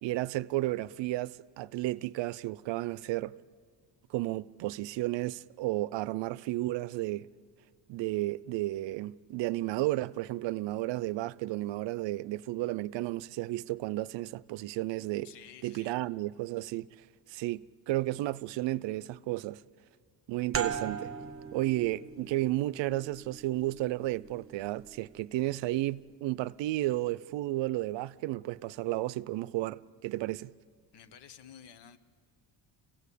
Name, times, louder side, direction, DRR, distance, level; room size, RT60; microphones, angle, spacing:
voice 1, 0.0-3.4 4.1-7.3 7.9-15.3 15.6-16.9 17.3-19.6 20.3-21.1 21.5-30.5, right 17 dB, 90° right, 0.6 m, -33 dB
voice 2, 15.2-16.0 30.9-32.0, left 8 dB, 70° left, 1.1 m, -52 dB
sound 1, 20.5-25.8, right 7 dB, 30° right, 0.9 m, -40 dB
28.5 x 16.5 x 8.3 m
cardioid pair, 160°, 42 cm